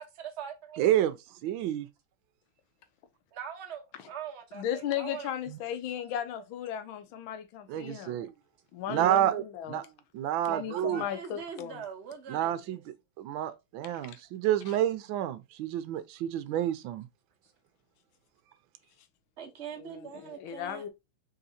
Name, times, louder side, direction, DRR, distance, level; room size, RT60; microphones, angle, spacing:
voice 1, 0.0-0.8 3.3-5.3 10.5-12.8 19.4-20.8, right 8 dB, 40° right, 1.1 m, -42 dB
voice 2, 0.8-1.1 1.4-1.9 5.5-5.6 7.7-8.3 8.9-9.4 9.7-9.9 10.1-11.0 12.3-12.8 13.2-17.0, right 12 dB, 80° right, 1.4 m, -29 dB
voice 3, 4.5-8.2 8.7-9.8 10.5-11.8 13.9-14.2 14.7-14.8 19.8-20.9, left 10 dB, 80° left, 1.5 m, -36 dB
4.1 x 3.9 x 2.7 m
omnidirectional pair, 2.2 m